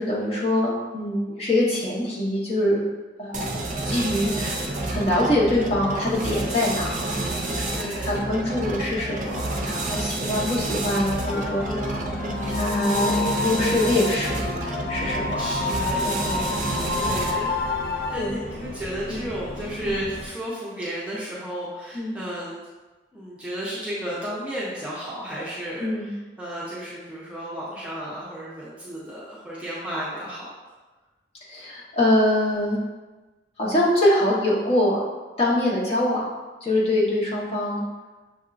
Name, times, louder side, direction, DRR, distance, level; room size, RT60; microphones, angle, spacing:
voice 1, 0.0-2.8 3.2-3.5 3.8-7.2 7.5-11.6 12.5-13.1 13.4-14.4 14.9-15.4 16.0-16.4 18.2-18.3 19.1-19.2 19.8-19.9 21.9-22.2 25.8-26.1 31.5-32.8 33.6-35.1 35.4-36.3 36.6-37.8, left 1 dB, 35° left, -7 dB, 1.1 m, -24 dB
sound 1, 3.3-17.5, right 1 dB, 45° right, 0.5 m, -29 dB
voice 2, 3.7-4.2 7.4-8.2 11.6-12.2 15.0-16.1 16.9-17.8 18.1-22.6 23.1-30.5, equal, 5° right, -8 dB, 0.7 m, -33 dB
sound 2, 11.3-18.1, left 3 dB, 50° left, 0.4 m, -29 dB
sound 3, 15.0-20.3, equal, 85° left, 1.0 m, -37 dB
6.6 x 2.7 x 2.5 m, 1.2 s
head